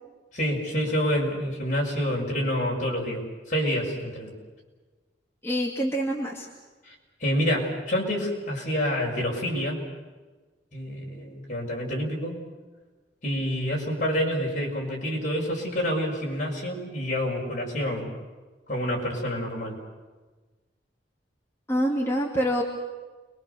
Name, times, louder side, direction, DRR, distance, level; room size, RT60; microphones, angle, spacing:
voice 1, 0.3-4.3 6.9-7.0 7.2-9.8 10.7-12.4 13.2-18.1 18.7-19.8, equal, 45° left, -2 dB, 6.5 m, -28 dB
voice 2, 5.4-6.5 21.7-22.6, equal, 15° left, -2 dB, 2.3 m, -26 dB
29.0 x 23.0 x 6.9 m, 1.3 s
head